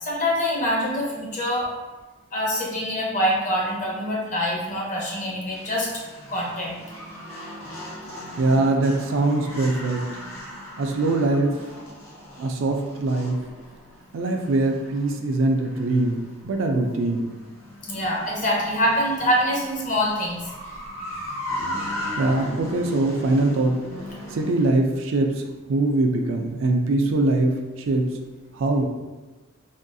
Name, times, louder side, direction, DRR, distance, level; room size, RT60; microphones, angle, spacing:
voice 1, 0.0-1.7 2.3-5.9 6.3-6.8 17.8-20.4, equal, 35° left, -3 dB, 0.7 m, -25 dB
sound 1, 5.5-24.7, left 1 dB, 85° left, 1.1 m, -38 dB
voice 2, 8.4-10.1 10.8-11.6 12.4-13.4 14.1-17.2 22.2-23.8 24.3-28.1 28.5-28.8, right 2 dB, 70° right, 3 dB, 0.4 m, -22 dB
3.5 x 2.3 x 2.6 m, 1.2 s
head